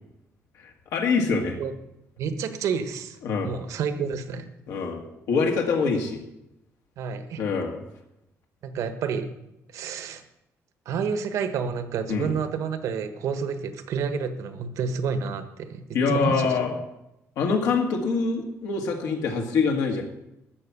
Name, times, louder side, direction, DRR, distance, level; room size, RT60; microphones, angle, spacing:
voice 1, 0.6-1.6 3.2-3.5 4.7-6.2 7.4-7.8 12.1-12.3 15.9-16.8 17.4-20.0, left 4 dB, 85° left, 1 dB, 1.8 m, -25 dB
voice 2, 2.2-3.2 3.4-4.5 7.0-7.4 8.6-9.3 9.7-10.2 10.8-16.5, right 6 dB, 70° right, 9 dB, 1.3 m, -29 dB
13.0 x 6.0 x 8.4 m, 0.87 s
cardioid pair, 160°, 5 cm